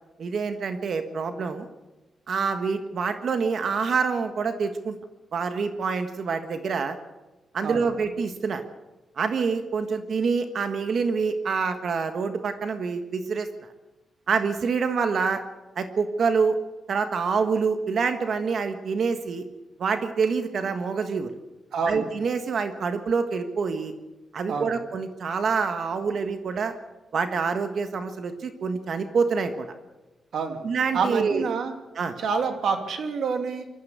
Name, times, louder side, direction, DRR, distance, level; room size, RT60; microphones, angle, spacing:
voice 1, 0.2-1.7 2.3-5.0 5.3-7.0 7.5-8.6 9.2-13.5 14.3-15.4 15.7-16.6 16.9-19.5 19.8-21.3 21.9-23.9 24.3-26.7 27.1-29.7 30.6-31.5 31.9-32.2, right 5 dB, 55° right, 7 dB, 1.5 m, -26 dB
voice 2, 21.7-22.1 24.5-24.7 30.3-30.6 30.9-31.7 32.2-33.6, right 5 dB, 70° right, 5 dB, 2.8 m, -27 dB
23.5 x 14.0 x 8.3 m, 1.1 s
wide cardioid pair, 130°, 0 cm